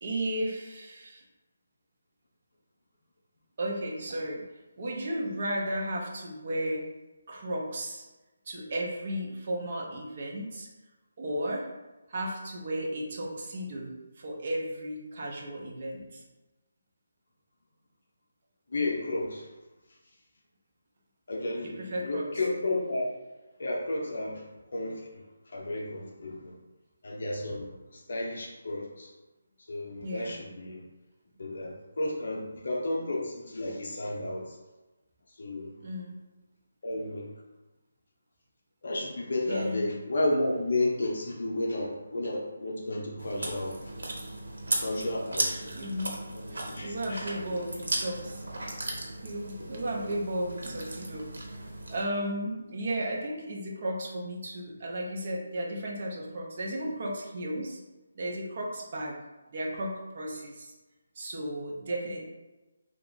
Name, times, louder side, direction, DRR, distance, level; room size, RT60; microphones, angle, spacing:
voice 1, 0.0-1.2 3.6-4.4 4.8-6.8 7.3-8.1 8.5-10.7 11.2-11.7 12.1-16.2 21.6-22.3 30.0-30.4 35.8-36.2 39.5-39.8 45.4-46.2 46.5-48.4 49.2-51.6 51.9-57.8 58.2-59.2 59.5-60.7 61.2-62.2, right 1 dB, 30° right, -2 dB, 0.7 m, -34 dB
voice 2, 18.7-19.5 21.3-23.1 23.6-25.2 25.5-26.5 27.0-29.1 29.7-30.8 31.4-34.6 35.4-35.7 36.8-37.3 38.8-43.8 44.8-45.8 46.3-47.6 49.6-49.7, left 2 dB, 50° left, -2 dB, 0.7 m, -32 dB
Chewing mastication, 43.2-52.0, right 2 dB, 80° right, 0.9 m, -36 dB
3.4 x 2.4 x 3.8 m, 1.1 s
hypercardioid pair, 175°, 0 cm